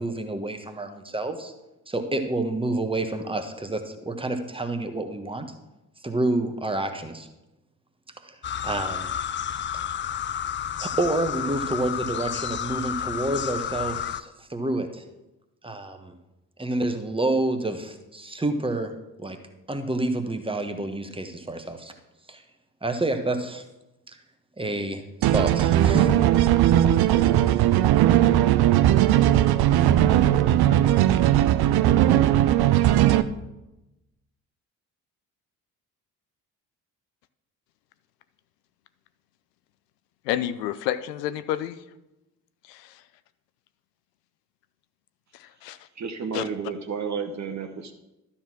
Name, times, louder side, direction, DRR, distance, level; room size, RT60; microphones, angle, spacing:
voice 1, 0.0-1.5 1.9-5.5 6.0-7.3 8.2-8.3 8.6-9.1 10.8-15.0 15.6-16.1 16.6-18.9 19.2-19.4 19.7-21.9 22.3-22.4 22.8-23.6 24.6-26.2, right 2 dB, 10° right, 6 dB, 1.3 m, -28 dB
sound 1, 8.4-14.2, left 9 dB, 25° left, 0.4 m, -31 dB
sound 2, 25.2-33.2, right 12 dB, 50° right, 0.7 m, -18 dB
voice 2, 40.2-41.8 42.7-43.0 45.3-45.8 46.3-46.4, left 12 dB, 75° left, 13 dB, 0.6 m, -29 dB
voice 3, 46.0-47.9, right 5 dB, 35° right, 6 dB, 1.2 m, -31 dB
12.5 x 4.4 x 6.0 m, 0.97 s
figure-of-eight pair, 45°, 48 cm